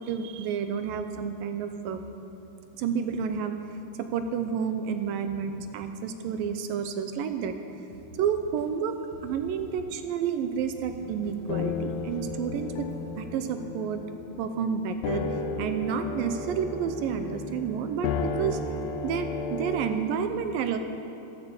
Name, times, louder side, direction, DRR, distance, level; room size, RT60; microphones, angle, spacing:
voice 1, 0.0-2.0 2.8-7.6 8.2-9.0 9.2-12.9 13.2-14.0 14.4-15.3 15.6-18.6 19.0-20.8, right 7 dB, 75° right, 8 dB, 2.3 m, -30 dB
sound 1, 7.9-10.3 10.6-12.9, right 2 dB, 55° right, 2.9 m, -49 dB
sound 2, 11.0-20.0, left 4 dB, 80° left, 2.5 m, -34 dB
13.5 x 13.5 x 7.2 m, 3.0 s
omnidirectional pair, 4.4 m